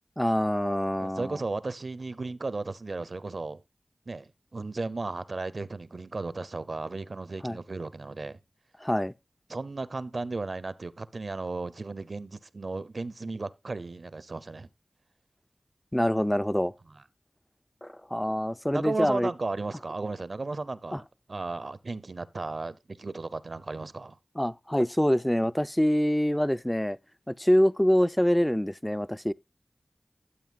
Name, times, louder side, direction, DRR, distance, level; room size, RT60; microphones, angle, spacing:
voice 1, 0.2-1.4 7.4-7.6 8.8-9.1 15.9-16.7 17.8-19.3 20.9-21.0 24.4-27.0 27.3-29.3, equal, 10° left, 0.4 m, -25 dB
voice 2, 1.0-3.6 4.1-8.4 9.5-14.7 16.9-17.0 18.7-21.0 21.3-24.2, right 3 dB, 65° right, 0.6 m, -35 dB
13.0 x 7.9 x 2.4 m
wide cardioid pair, 45°, 0 cm